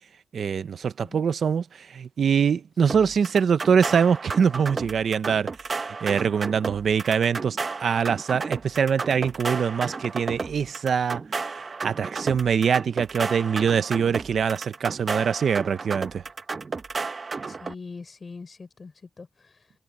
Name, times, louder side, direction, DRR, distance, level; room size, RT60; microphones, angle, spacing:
voice 1, 0.3-5.5 6.0-11.2 11.5-16.2, right 7 dB, 75° right, 0.7 m, -23 dB
voice 2, 2.8-3.1 17.5-19.7, left 4 dB, 45° left, 4.7 m, -43 dB
sound 1, 2.9-17.7, right 4 dB, 45° right, 1.3 m, -33 dB
wide cardioid pair, 110°, 0 cm